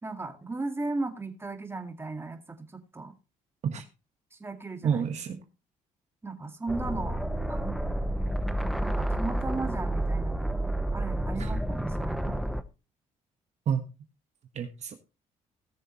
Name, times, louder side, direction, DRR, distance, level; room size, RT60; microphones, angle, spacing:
voice 1, 0.0-3.1 4.3-5.0 6.2-7.8 8.8-10.6 10.9-12.4, right 3 dB, 15° right, 5 dB, 2.1 m, -36 dB
voice 2, 4.8-5.4 11.4-11.5 13.7-13.8 14.5-14.9, right 7 dB, 55° right, 7 dB, 1.3 m, -29 dB
sound 1, 6.7-12.6, right 1 dB, ahead, 0.9 m, -30 dB
18.0 x 6.7 x 3.1 m, 0.30 s
cardioid pair, 90°, 14 cm